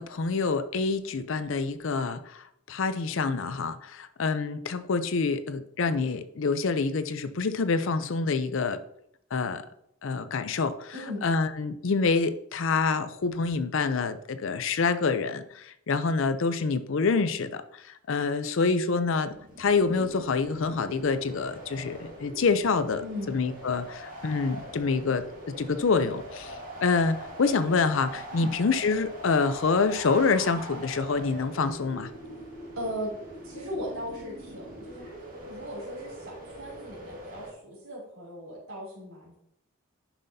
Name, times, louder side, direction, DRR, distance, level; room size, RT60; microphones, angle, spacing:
voice 1, 0.0-8.8 9.3-9.6 10.0-10.9 11.2-17.6 18.1-23.0 23.3-26.6 26.8-32.1, left 4 dB, 65° left, 12 dB, 0.5 m, -27 dB
voice 2, 10.9-11.2 23.0-23.4 28.3-28.5 32.7-33.1 33.4-35.1 35.4-39.4, equal, 80° right, -6 dB, 2.9 m, -38 dB
sound 1, 19.1-37.5, right 1 dB, 40° right, 1.8 m, -43 dB
9.8 x 5.8 x 2.7 m, 0.74 s
head